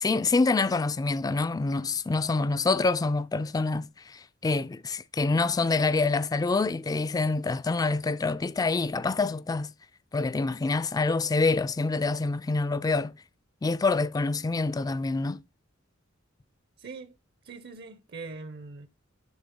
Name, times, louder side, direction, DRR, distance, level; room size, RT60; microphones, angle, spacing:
voice 1, 0.0-9.7 10.1-13.1 13.6-15.4, left 3 dB, 20° left, 0.3 m, -26 dB
voice 2, 16.8-17.2 17.4-18.9, right 4 dB, 55° right, 0.6 m, -42 dB
10.5 x 3.6 x 3.6 m
head